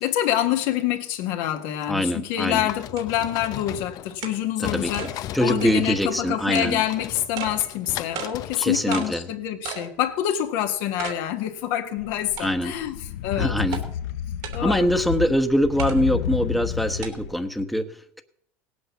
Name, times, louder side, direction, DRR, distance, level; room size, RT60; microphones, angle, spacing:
voice 1, 0.0-5.1 5.4-13.0 13.2-13.5 14.5-14.9, left 11 dB, 70° left, 1.7 m, -26 dB
voice 2, 1.9-2.7 4.6-6.8 8.6-9.3 12.4-12.7 13.4-13.8 14.6-18.2, equal, ahead, 1.2 m, -24 dB
sound 1, 2.2-2.3 3.0-3.1 3.4-3.5 4.2-4.4 4.9-5.1 5.6-5.8 6.5-6.7 7.4-7.5 8.1-8.3 8.9-9.1 9.6-9.9 10.3-10.4 11.0-11.2 11.6-11.7 12.4-12.8 13.7-13.8 14.4-14.6 15.8-16.0 17.0-17.1, right 9 dB, 65° right, 2.9 m, -33 dB
sound 2, 2.5-4.3 4.6-9.2, left 13 dB, 50° left, 0.6 m, -37 dB
sound 3, 12.0-17.4, left 10 dB, 90° left, 0.7 m, -30 dB
17.5 x 8.4 x 7.1 m
supercardioid pair, 100°, 8 cm